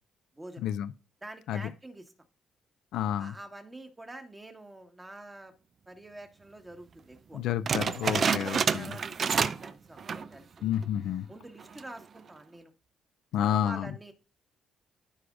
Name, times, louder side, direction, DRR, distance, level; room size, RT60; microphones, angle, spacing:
voice 1, 0.4-0.7 1.2-2.1 3.2-5.5 5.9-7.4 8.1-10.7 11.3-12.7 13.4-14.1, right 1 dB, 15° right, 1.5 m, -46 dB
voice 2, 2.9-3.3 7.3-8.9 10.6-11.3 13.3-13.9, left 10 dB, 85° left, 0.4 m, -30 dB
sound 1, 7.7-9.7 10.0-10.3 10.8-10.9 11.6-12.0, right 6 dB, 50° right, 0.4 m, -28 dB
14.0 x 5.0 x 2.5 m
cardioid pair, 90°, 0 cm